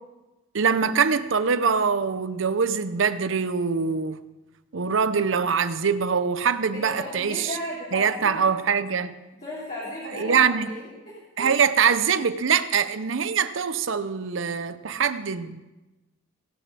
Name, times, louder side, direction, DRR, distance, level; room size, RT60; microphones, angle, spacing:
voice 1, 0.5-4.2 4.7-7.5 7.9-9.2 10.2-10.7 11.4-15.6, right 6 dB, 75° right, 0.7 m, -23 dB
voice 2, 6.7-8.4 9.4-11.5, left 1 dB, 35° left, 3.2 m, -35 dB
18.0 x 6.7 x 6.1 m
head